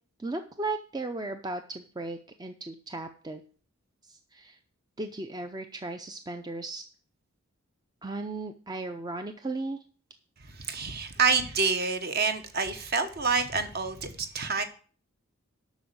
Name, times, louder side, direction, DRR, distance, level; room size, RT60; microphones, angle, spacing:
voice 1, 0.2-3.4 4.0-4.6 5.0-6.8 8.0-9.8, right 2 dB, 20° right, 7 dB, 0.5 m, -36 dB
voice 2, 10.4-14.6, right 4 dB, 45° right, 8 dB, 1.1 m, -28 dB
8.2 x 6.1 x 7.9 m, 0.43 s
head